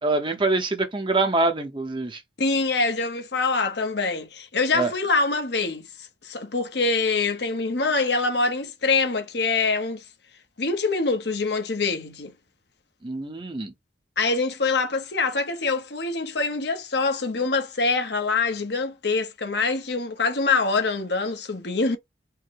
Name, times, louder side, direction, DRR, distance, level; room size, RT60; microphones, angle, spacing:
voice 1, 0.0-2.2 4.7-4.9 13.0-13.7, right 3 dB, 25° right, 0.9 m, -24 dB
voice 2, 2.4-10.0 10.6-12.3 14.2-22.0, left 4 dB, 70° left, 1.0 m, -25 dB
4.7 x 2.2 x 4.6 m
head